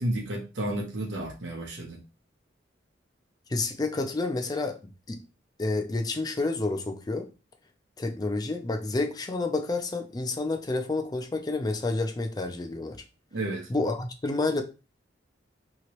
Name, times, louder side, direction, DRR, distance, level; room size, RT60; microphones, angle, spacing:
voice 1, 0.0-2.0 13.3-13.7, right 1 dB, 90° right, 0 dB, 0.8 m, -32 dB
voice 2, 3.5-4.8 5.1-5.2 5.6-7.3 8.0-13.0 13.7-14.6, left 3 dB, 20° left, 5 dB, 0.4 m, -29 dB
2.9 x 2.9 x 2.9 m, 0.30 s
head